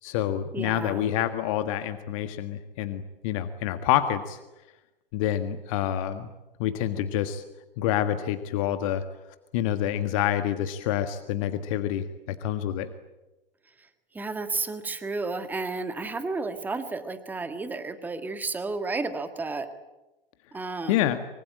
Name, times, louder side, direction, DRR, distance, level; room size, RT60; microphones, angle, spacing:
voice 1, 0.0-4.4 5.1-6.3 6.6-7.4 7.8-9.0 9.5-12.9 20.9-21.2, left 11 dB, 35° left, 10 dB, 1.7 m, -27 dB
voice 2, 0.5-1.0 14.1-19.7 20.5-21.1, right 3 dB, 5° right, 10 dB, 1.7 m, -32 dB
25.0 x 24.0 x 8.8 m, 1.0 s
figure-of-eight pair, 115°, 29 cm